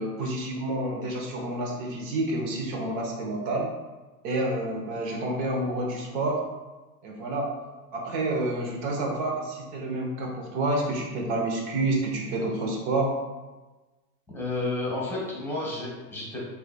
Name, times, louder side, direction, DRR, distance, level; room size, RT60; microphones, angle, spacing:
voice 1, 0.0-3.7 4.2-6.4 7.0-7.5 7.9-13.2, right 2 dB, 45° right, 0 dB, 1.0 m, -29 dB
voice 2, 14.3-16.4, left 2 dB, 5° left, -5 dB, 1.1 m, -31 dB
3.5 x 3.4 x 2.2 m, 1.2 s
hypercardioid pair, 110°, 47 cm